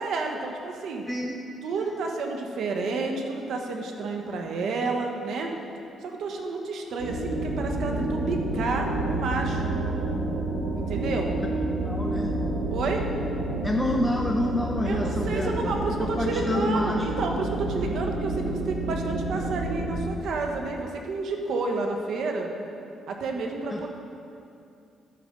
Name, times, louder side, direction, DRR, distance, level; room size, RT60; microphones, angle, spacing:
voice 1, 0.0-1.0 1.6-5.5 6.0-9.7 10.7-11.3 12.7-13.1 14.8-22.5 23.1-23.9, right 3 dB, 70° right, 2 dB, 1.2 m, -30 dB
voice 2, 1.1-1.4 1.7-2.0 11.8-12.4 13.6-17.1 23.7-23.9, left 1 dB, 10° left, 2 dB, 0.6 m, -28 dB
sound 1, 7.0-19.9, right 2 dB, 90° right, 2.3 m, -29 dB
11.5 x 9.2 x 3.9 m, 2.6 s
cardioid pair, 90°, 0 cm